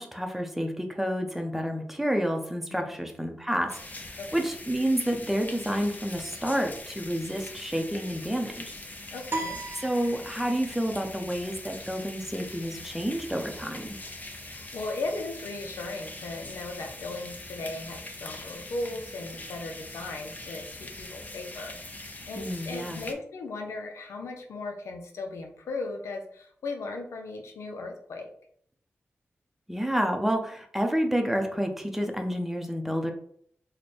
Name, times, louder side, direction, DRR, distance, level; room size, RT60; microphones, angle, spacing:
voice 1, 0.0-8.7 9.8-14.0 22.4-23.0 29.7-33.1, equal, 5° right, 4 dB, 0.7 m, -29 dB
voice 2, 2.7-3.1 4.2-4.5 9.1-9.6 14.4-28.3, left 2 dB, 90° left, 3 dB, 0.5 m, -37 dB
sound 1, 3.7-23.1, left 2 dB, 35° left, 0.7 m, -42 dB
sound 2, 9.3-10.7, right 2 dB, 50° right, 0.6 m, -35 dB
3.1 x 2.2 x 4.2 m, 0.64 s
cardioid pair, 45°, 5 cm